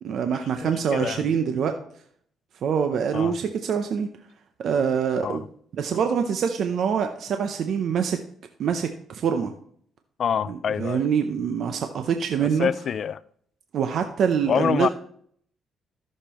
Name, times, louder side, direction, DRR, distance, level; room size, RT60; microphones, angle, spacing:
voice 1, 0.0-1.8 2.6-4.1 4.6-5.5 5.8-8.2 8.6-9.5 10.5-12.7 13.7-14.9, right 7 dB, 65° right, 6 dB, 0.7 m, -25 dB
voice 2, 0.6-1.3 3.1-3.3 5.2-5.4 10.2-11.1 12.6-13.2 14.5-14.9, left 7 dB, 55° left, 18 dB, 0.3 m, -26 dB
13.5 x 6.6 x 3.0 m, 0.62 s
cardioid pair, 90°, 0 cm